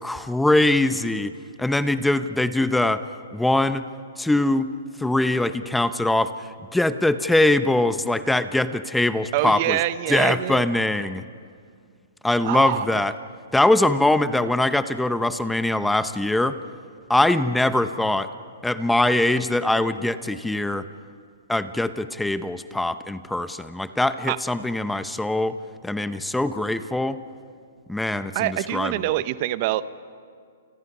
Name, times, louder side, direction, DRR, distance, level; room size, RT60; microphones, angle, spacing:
voice 1, 0.0-1.3 1.6-3.0 3.3-3.8 4.2-4.7 5.0-6.3 6.7-9.8 10.1-11.2 12.2-13.1 13.5-16.6 17.1-18.3 18.6-20.8 21.5-25.5 25.8-27.2 27.9-29.2, left 2 dB, 5° left, 11 dB, 0.8 m, -22 dB
voice 2, 9.3-10.6 12.4-13.0 24.3-24.4 28.3-29.8, right 15 dB, 45° right, 15 dB, 0.9 m, -25 dB
30.0 x 29.0 x 5.5 m, 2.2 s
hypercardioid pair, 130°, 0 cm